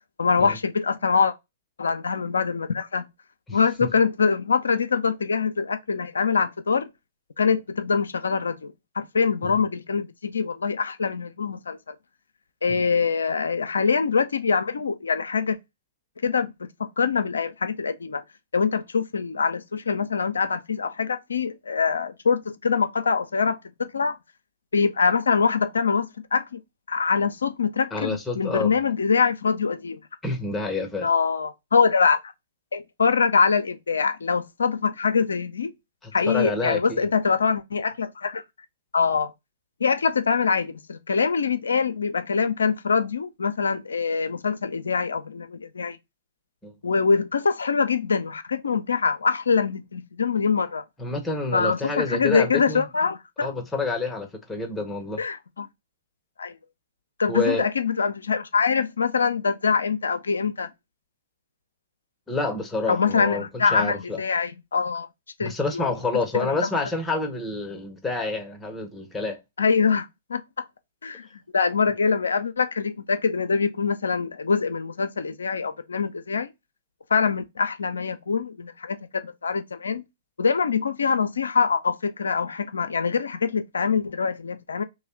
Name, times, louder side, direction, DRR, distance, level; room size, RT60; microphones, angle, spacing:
voice 1, 0.2-1.3 1.8-3.0 3.5-6.9 7.4-11.9 12.6-15.6 16.2-18.2 18.5-24.2 24.7-26.6 26.9-30.0 31.0-32.3 32.7-35.7 36.1-38.4 38.9-39.3 39.8-46.0 46.8-50.8 51.5-53.5 55.2-55.7 56.4-56.5 57.2-60.7 62.9-65.1 65.4-65.9 66.6-66.7 69.6-70.7 71.0-71.3 71.5-76.5 77.1-80.0 80.4-84.8, left 5 dB, 75° left, 0.5 m, -24 dB
voice 2, 3.5-3.9 9.4-9.6 12.7-12.8 27.9-28.7 30.2-31.1 36.0-37.1 46.6-46.8 51.0-52.8 53.4-55.2 57.3-57.7 62.3-64.2 65.4-69.4, left 3 dB, 10° left, 0.8 m, -28 dB
3.1 x 2.2 x 4.2 m
figure-of-eight pair, 115°, 0 cm